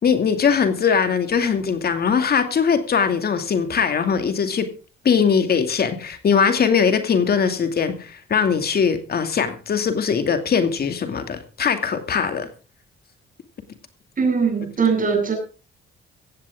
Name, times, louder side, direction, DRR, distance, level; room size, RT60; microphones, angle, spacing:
voice 1, 0.0-4.7 5.0-12.5, left 6 dB, 50° left, 8 dB, 2.5 m, -21 dB
voice 2, 14.2-15.4, right 5 dB, 40° right, 4 dB, 7.1 m, -20 dB
16.0 x 16.0 x 3.7 m, 0.35 s
cardioid pair, 90°, 20 cm